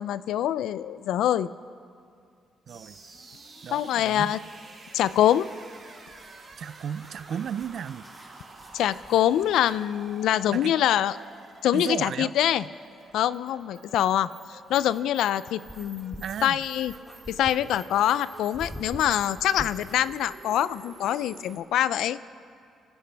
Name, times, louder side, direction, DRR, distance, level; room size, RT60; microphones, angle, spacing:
voice 1, 0.0-1.5 3.7-4.4 4.9-5.5 8.7-11.2 11.6-12.6 13.1-16.2 16.4-16.9 17.3-22.2, left 11 dB, 80° left, 0.4 m, -24 dB
sound 1, 2.7-21.6, right 3 dB, 35° right, 3.4 m, -49 dB
voice 2, 2.7-3.0 3.6-4.3 6.6-8.0 10.5-10.7 11.7-12.3 16.2-16.6, right 8 dB, 60° right, 0.4 m, -34 dB
sound 2, 5.4-9.8 12.2-12.3 14.3-20.1, equal, ahead, 2.3 m, -46 dB
27.0 x 14.5 x 3.4 m
cardioid pair, 90°, 0 cm